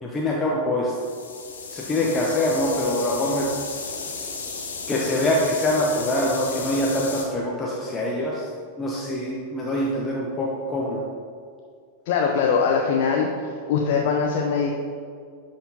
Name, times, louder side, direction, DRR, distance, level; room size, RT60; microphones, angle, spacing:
voice 1, 0.0-0.9 1.7-3.5 4.9-8.4 8.8-11.0, left 1 dB, 15° left, -4 dB, 0.8 m, -24 dB
sound 1, 0.9-7.2, left 4 dB, 70° left, 1.0 m, -34 dB
voice 2, 12.1-13.3 13.7-14.7, left 6 dB, 50° left, 0 dB, 0.5 m, -21 dB
10.5 x 4.4 x 2.9 m, 2.2 s
figure-of-eight pair, 90°, 0 cm